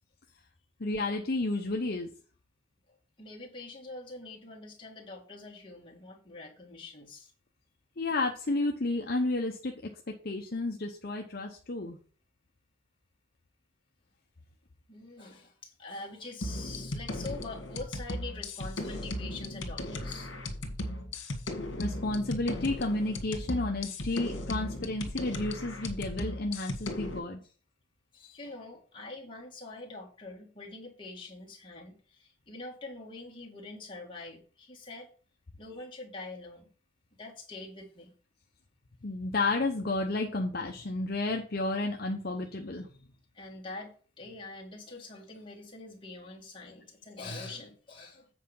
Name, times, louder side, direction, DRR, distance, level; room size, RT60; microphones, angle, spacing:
voice 1, 0.8-2.1 8.0-9.7 10.1-12.0 21.8-27.4 39.0-42.9, left 2 dB, 50° left, 2 dB, 0.8 m, -31 dB
voice 2, 2.9-7.3 14.9-20.3 28.1-35.1 35.6-36.7 37.2-38.1 43.3-48.3, left 3 dB, 25° left, -2 dB, 2.1 m, -45 dB
sound 1, 16.4-27.2, left 1 dB, 70° left, 1.8 m, -37 dB
8.2 x 4.8 x 5.5 m, 0.40 s
head